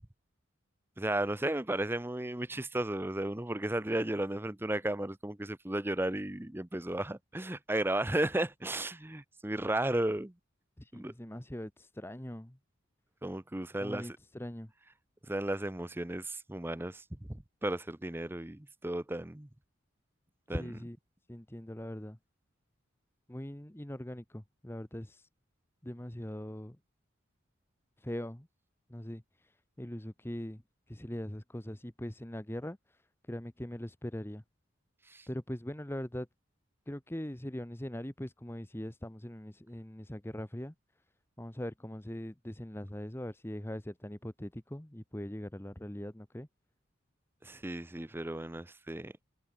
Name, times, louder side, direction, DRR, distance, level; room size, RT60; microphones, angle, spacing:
voice 1, 1.0-10.3 10.9-11.1 13.2-14.2 15.3-19.5 20.5-20.7 35.1-35.3 47.4-49.1, right 1 dB, 10° right, 0.7 m, -34 dB
voice 2, 10.8-12.6 13.8-14.7 20.5-21.0 21.3-22.2 23.3-25.3 25.8-26.8 28.0-28.5 28.9-30.6 30.9-33.0 33.3-34.4 35.3-36.3 36.9-40.7 41.4-46.5, left 1 dB, 10° left, 1.0 m, -41 dB
head